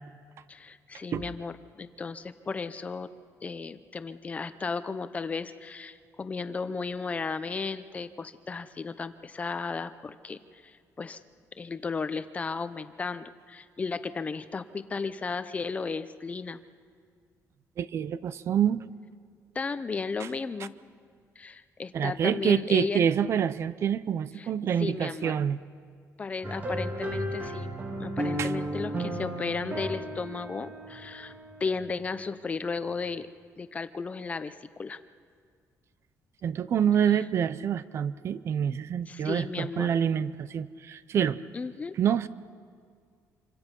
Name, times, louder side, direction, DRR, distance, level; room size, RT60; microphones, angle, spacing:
voice 1, 0.5-3.1 3.4-11.2 11.6-16.6 19.5-20.7 21.4-23.1 24.4-24.5 24.8-25.4 26.2-27.7 28.0-31.3 31.6-33.3 33.6-35.0 37.0-37.2 39.1-39.9 41.5-41.9, left 4 dB, 20° left, 12 dB, 0.7 m, -34 dB
voice 2, 17.8-18.8 21.9-25.6 28.4-28.5 36.4-41.4 42.0-42.3, right 8 dB, 45° right, 16 dB, 0.6 m, -27 dB
sound 1, 26.4-32.0, right 1 dB, 25° right, 2.0 m, -34 dB
26.5 x 25.0 x 5.4 m, 2.1 s
cardioid pair, 155°, 6 cm